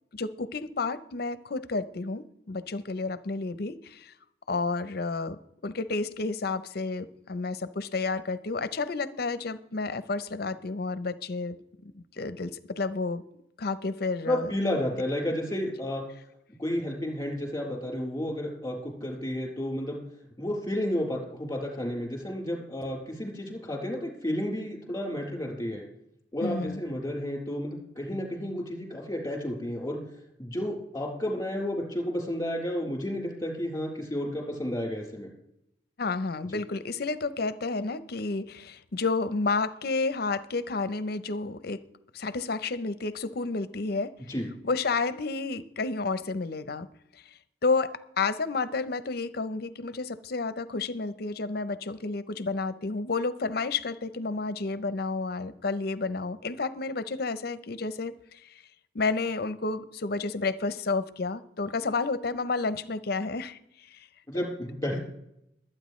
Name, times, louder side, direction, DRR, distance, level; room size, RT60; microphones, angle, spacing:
voice 1, 0.1-4.1 4.5-11.6 11.8-13.2 13.6-14.5 26.4-26.8 36.0-41.9 42.1-44.2 44.6-46.9 47.6-58.1 58.4-58.6 58.9-64.1, left 3 dB, 60° left, 14 dB, 0.7 m, -31 dB
voice 2, 14.2-16.0 16.6-20.0 20.4-25.8 26.3-30.0 30.4-35.3 44.3-44.5 64.3-65.0, left 1 dB, 15° left, -1 dB, 3.9 m, -31 dB
22.5 x 8.8 x 3.2 m, 0.80 s
head